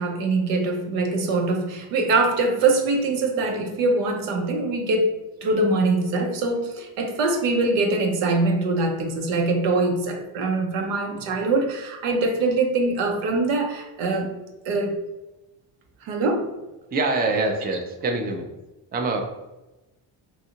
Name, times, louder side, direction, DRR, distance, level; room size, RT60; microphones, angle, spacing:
voice 1, 0.0-14.3 14.6-14.9 16.0-16.5, right 2 dB, 85° right, 3 dB, 0.8 m, -23 dB
voice 2, 16.9-18.5 18.9-19.2, right 3 dB, 20° right, 2 dB, 0.4 m, -24 dB
2.7 x 2.4 x 2.8 m, 1.0 s
cardioid pair, 80°, 50 cm